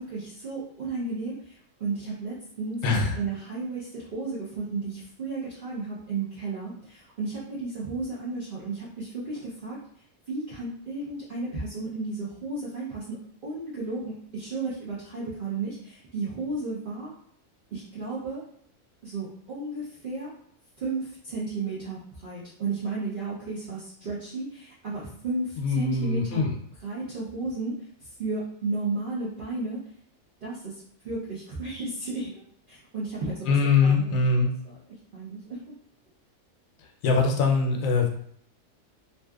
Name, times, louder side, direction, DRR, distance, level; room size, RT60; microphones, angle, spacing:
voice 1, 0.0-9.8 10.3-13.2 13.4-17.1 17.7-18.4 19.0-20.3 20.8-26.5 26.8-27.7 28.0-29.8 30.4-32.3 32.7-33.5 33.8-34.2 34.6-34.8 35.1-35.6, right 3 dB, 55° right, -7 dB, 0.6 m, -33 dB
voice 2, 2.8-3.1 25.6-26.5 33.5-34.5 37.0-38.1, left 4 dB, 75° left, 1 dB, 1.0 m, -22 dB
2.6 x 2.4 x 2.2 m, 0.64 s
omnidirectional pair, 1.4 m